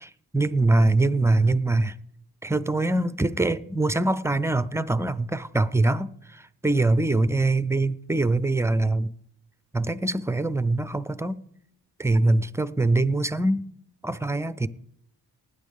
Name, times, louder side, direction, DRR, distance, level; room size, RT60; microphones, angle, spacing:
voice 1, 0.0-1.9 2.4-9.1 9.7-11.4 12.0-13.6 14.0-14.7, right 2 dB, 5° right, 0.4 m, -23 dB
19.5 x 9.6 x 3.6 m
cardioid pair, 100°, 40 cm